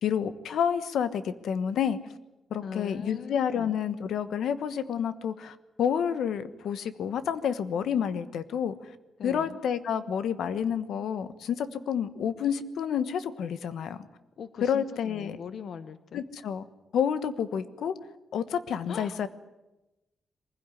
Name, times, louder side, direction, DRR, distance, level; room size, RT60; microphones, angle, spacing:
voice 1, 0.0-2.0 2.5-8.7 9.2-14.1 14.6-15.4 16.1-16.6 16.9-18.0 18.3-19.3, left 8 dB, 85° left, 12 dB, 1.2 m, -29 dB
voice 2, 2.6-3.8 9.2-9.6 14.4-16.3 18.9-19.3, left 7 dB, 60° left, 12 dB, 1.0 m, -40 dB
23.5 x 16.0 x 9.9 m, 1.0 s
wide cardioid pair, 155°, 0 cm